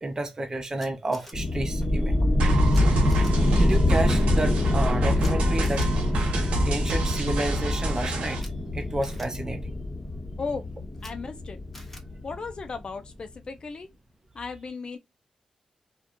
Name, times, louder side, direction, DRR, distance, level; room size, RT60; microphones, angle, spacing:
voice 1, 0.0-2.2 2.9-3.1 3.5-5.9 6.6-8.5 8.7-9.7, right 2 dB, 30° right, 0.5 m, -31 dB
Camera, 0.8-1.3 2.7-2.8 3.1-3.3 5.2-5.3 5.6-5.9 8.3-8.5 9.0-9.3 10.9-11.1 11.7-12.0, equal, 10° left, 0.9 m, -46 dB
sound 1, 1.3-12.8, left 1 dB, 30° left, 1.1 m, -25 dB
sound 2, 2.4-8.4, right 1 dB, 90° right, 0.6 m, -28 dB
voice 2, 11.0-11.6 12.2-13.9 14.3-15.0, left 4 dB, 50° left, 0.4 m, -35 dB
2.3 x 2.1 x 2.8 m
cardioid pair, 55°, 2 cm